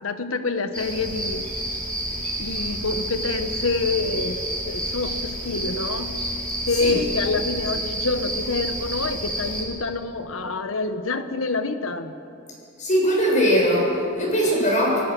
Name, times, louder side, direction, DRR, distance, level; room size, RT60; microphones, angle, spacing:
voice 1, 0.0-1.5 2.4-6.2 6.7-12.1, left 3 dB, 90° left, 9 dB, 1.3 m, -27 dB
sound 1, 0.7-9.6, right 1 dB, 5° left, 7.0 m, -29 dB
voice 2, 12.8-15.0, equal, 40° left, -2 dB, 7.3 m, -20 dB
26.5 x 18.0 x 6.3 m, 2.7 s
head